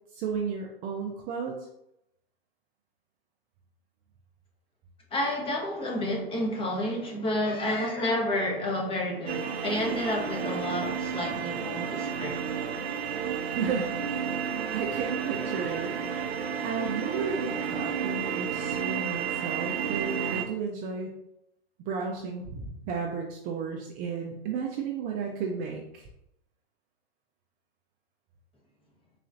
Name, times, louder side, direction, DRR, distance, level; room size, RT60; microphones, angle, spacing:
voice 1, 0.1-1.6 13.5-14.0 14.4-21.1 21.9-26.1, right 5 dB, 30° right, 0.4 m, -33 dB
voice 2, 5.1-12.4, left 1 dB, 15° left, 1.0 m, -30 dB
sound 1, 9.3-20.4, right 7 dB, 85° right, 0.6 m, -32 dB
3.9 x 3.0 x 2.5 m
hypercardioid pair, 120°, 31 cm